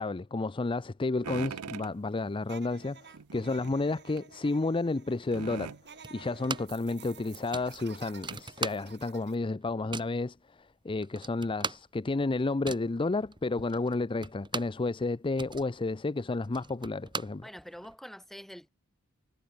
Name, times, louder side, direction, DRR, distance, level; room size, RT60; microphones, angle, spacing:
voice 1, 0.0-5.7 6.1-17.5, left 3 dB, 25° left, 0.5 m, -31 dB
sound 1, 1.2-2.0 3.1-3.8 4.2-4.3 5.3-5.8 7.1-7.2 7.6-7.7 8.3-8.4, right 6 dB, 85° right, 0.7 m, -41 dB
sound 2, 2.4-9.3, right 7 dB, 50° right, 6.9 m, -52 dB
sound 3, 6.0-6.9 7.1-7.2 7.5-9.2 9.5-10.2 10.7-10.8 11.0-14.9 15.2-17.9, right 4 dB, 20° right, 3.6 m, -39 dB
voice 2, 17.4-18.7, equal, ahead, 2.5 m, -45 dB
head